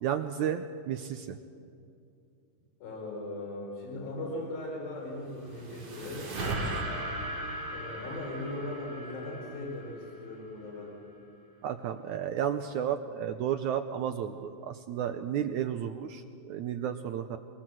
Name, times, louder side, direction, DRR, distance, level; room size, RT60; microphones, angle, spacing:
voice 1, 0.0-1.4 11.6-17.4, right 9 dB, 75° right, 8 dB, 1.9 m, -32 dB
voice 2, 2.8-6.2 7.7-10.9, left 2 dB, 85° left, -2 dB, 6.3 m, -38 dB
sound 1, 5.1-10.5, right 1 dB, 45° right, 3.9 m, -37 dB
24.0 x 23.5 x 7.8 m, 2.5 s
omnidirectional pair, 4.1 m